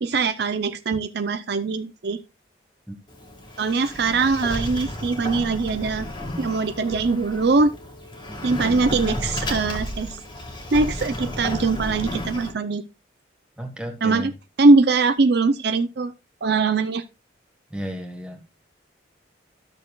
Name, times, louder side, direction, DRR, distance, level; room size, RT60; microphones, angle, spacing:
voice 1, 0.0-2.2 3.6-6.1 6.4-7.7 8.4-10.2 10.7-12.8 14.0-14.3 14.6-16.1 16.4-17.0, right 3 dB, 55° right, 0.5 m, -21 dB
Sliding door, 3.1-12.5, left 1 dB, 25° left, 1.7 m, -32 dB
voice 2, 13.6-14.3 17.7-18.4, equal, 5° right, 1.4 m, -33 dB
13.0 x 6.6 x 2.3 m
head